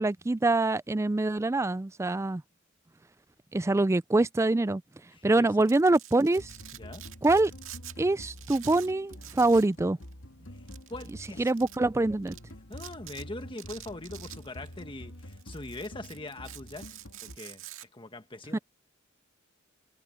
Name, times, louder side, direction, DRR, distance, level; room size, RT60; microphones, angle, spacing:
voice 1, 0.0-2.4 3.5-4.8 5.2-6.5 7.2-7.5 8.0-10.0 11.4-12.4 18.5-18.6, right 2 dB, 15° right, 0.3 m, -25 dB
voice 2, 5.1-5.7 6.7-7.1 10.5-10.6 10.9-11.5 12.7-16.9 17.2-17.6 17.9-18.6, left 2 dB, 25° left, 1.5 m, -42 dB
Domestic sounds home sounds, 5.5-8.0 8.2-9.8 10.0-10.1 10.7-11.8 12.3-12.4 12.7-13.2 13.6-14.8 15.2-17.9, right 13 dB, 80° right, 2.0 m, -47 dB
sound 1, 6.4-17.4, equal, 75° left, 2.6 m, -47 dB
head